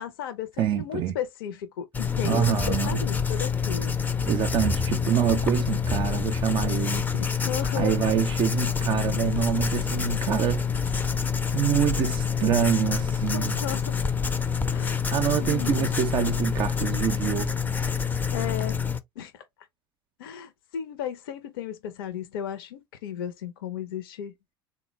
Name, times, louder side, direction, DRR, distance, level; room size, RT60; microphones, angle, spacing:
voice 1, 0.0-3.9 7.1-8.0 11.4-11.6 13.3-14.0 14.7-15.0 15.4-15.9 18.3-18.8 19.2-19.4 20.2-24.3, left 9 dB, 70° left, 0.6 m, -35 dB
voice 2, 0.6-1.2 2.2-3.0 4.3-7.1 7.7-10.6 11.5-13.6 15.1-17.5, right 10 dB, 40° right, 0.4 m, -26 dB
Writing, 1.9-19.0, left 6 dB, 15° left, 0.5 m, -27 dB
3.7 x 2.1 x 3.0 m
figure-of-eight pair, 70°, 12 cm